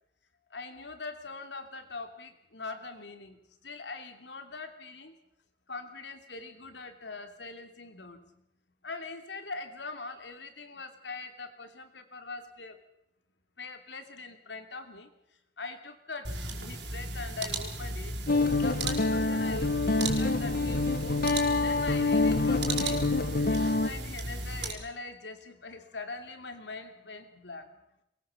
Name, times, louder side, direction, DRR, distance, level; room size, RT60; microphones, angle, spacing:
voice 1, 0.5-5.1 5.7-8.2 8.8-12.8 13.6-15.1 15.6-18.1 18.6-21.3 21.5-23.0 23.5-27.7, left 3 dB, 75° left, 7 dB, 2.9 m, -42 dB
sound 1, 16.2-24.7, right 2 dB, 75° right, 5.3 m, -36 dB
Guitar, 18.3-23.9, left 3 dB, 55° left, 1.3 m, -26 dB
23.5 x 21.0 x 7.1 m, 0.81 s
head